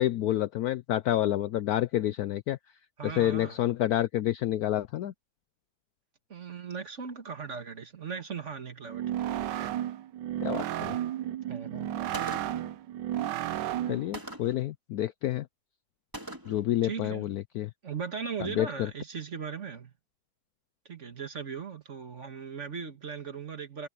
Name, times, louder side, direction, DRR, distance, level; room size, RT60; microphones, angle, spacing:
voice 1, 0.0-2.6 3.2-5.1 10.4-11.0 13.9-15.5 16.5-17.7 18.4-18.9, left 13 dB, 85° left, 0.8 m, -28 dB
voice 2, 3.0-3.7 6.3-9.5 11.5-11.9 16.8-17.2 17.8-19.9 20.9-23.9, right 6 dB, 40° right, 1.8 m, -38 dB
sound 1, 8.8-14.1, right 12 dB, 70° right, 1.3 m, -33 dB
Gunshot gunfire, 12.1-12.7 14.1-14.7 16.1-16.7, right 1 dB, 10° right, 2.5 m, -41 dB
omnidirectional pair, 2.2 m